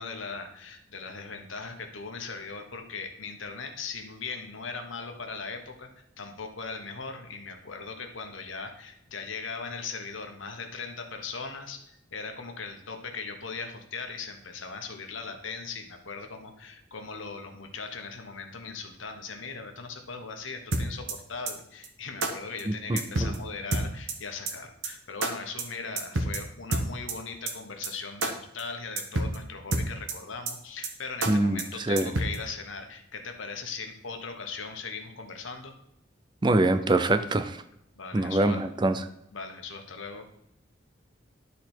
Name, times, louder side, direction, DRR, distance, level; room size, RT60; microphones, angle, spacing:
voice 1, 0.0-5.9 6.2-35.7 38.0-38.6 39.3-40.3, left 4 dB, 80° left, 5 dB, 1.2 m, -39 dB
sound 1, 20.7-21.1 21.5-21.6 21.8-21.9 22.2-22.3 22.6-22.7 23.0-23.4 23.7-24.1 24.5-24.6 24.8-24.9 25.2-25.3 25.6-25.7 26.0-26.4 26.7-27.1 27.5-27.6 27.8-27.9 28.2-28.3 28.6-28.7 29.0-29.4 29.7-30.1 30.5-30.6 30.8-30.9 31.2-31.3 31.6-31.7 32.0-32.4, right 2 dB, 80° right, 1.2 m, -28 dB
voice 2, 22.9-23.3 31.3-32.1 36.4-37.6 38.1-39.0, right 2 dB, 25° right, 11 dB, 0.4 m, -24 dB
12.0 x 4.1 x 4.5 m, 0.78 s
head